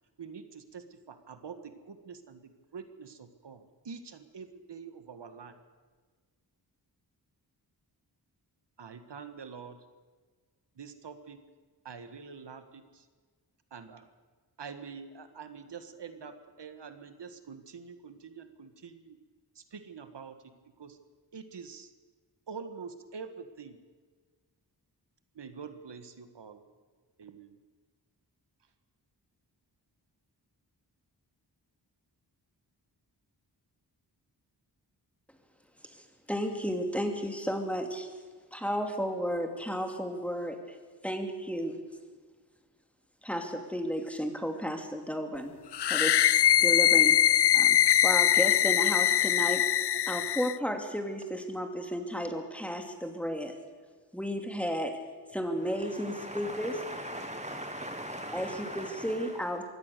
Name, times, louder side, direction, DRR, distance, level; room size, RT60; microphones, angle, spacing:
voice 1, 0.2-2.4 2.7-5.5 8.8-9.8 10.8-11.4 11.8-13.0 13.7-14.1 14.6-19.2 19.5-20.4 20.8-21.0 21.3-21.9 22.5-23.8 25.3-26.6 27.2-27.6, right 5 dB, 80° right, 1.6 m, -45 dB
voice 2, 36.3-38.1 38.5-40.6 41.0-41.8 43.2-45.5 45.9-46.3 46.6-47.2 47.5-47.8 48.0-49.6 50.1-53.6 54.1-55.0 55.3-56.8 58.3-59.6, equal, 5° left, 2.6 m, -33 dB
sound 1, 45.7-50.6, left 11 dB, 70° left, 0.6 m, -23 dB
voice 3, 56.1-59.1, right 1 dB, 15° right, 1.1 m, -39 dB
23.0 x 17.0 x 6.8 m
wide cardioid pair, 95°, 42 cm